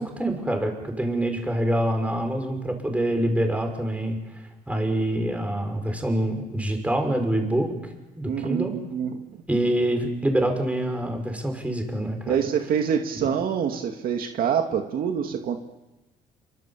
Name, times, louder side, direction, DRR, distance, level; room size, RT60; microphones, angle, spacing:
voice 1, 0.0-4.2 4.7-7.7 8.1-8.7 9.5-12.4 13.1-13.3, right 1 dB, 10° right, 4 dB, 6.0 m, -25 dB
voice 2, 8.2-9.2 12.3-15.6, right 8 dB, 60° right, 4 dB, 2.2 m, -26 dB
28.0 x 25.0 x 7.5 m, 1.0 s
cardioid pair, 110°, 17 cm